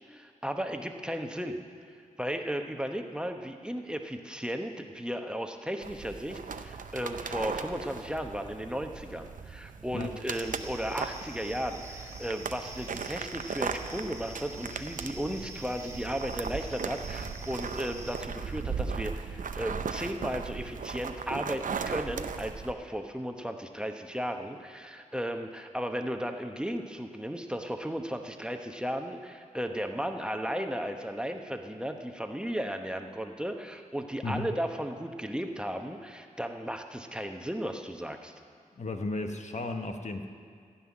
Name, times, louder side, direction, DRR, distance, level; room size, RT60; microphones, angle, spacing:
voice 1, 0.1-1.6 2.2-38.3, equal, 5° right, 4 dB, 1.0 m, -35 dB
sound 1, 5.8-22.7, right 5 dB, 75° right, 0.6 m, -38 dB
sound 2, 10.3-18.2, right 2 dB, 20° right, 1.4 m, -46 dB
voice 2, 34.2-34.5 38.8-40.3, left 2 dB, 55° left, 5 dB, 1.0 m, -34 dB
15.5 x 5.7 x 9.8 m, 2.2 s
cardioid pair, 50°, 14 cm